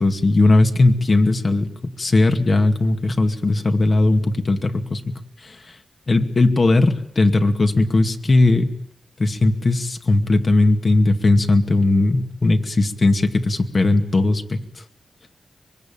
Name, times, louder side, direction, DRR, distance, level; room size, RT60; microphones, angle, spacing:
voice 1, 0.0-5.6 6.1-8.7 9.2-14.6, left 2 dB, 50° left, 6 dB, 2.3 m, -18 dB
24.5 x 22.0 x 9.0 m, 0.75 s
cardioid pair, 65°, 0 cm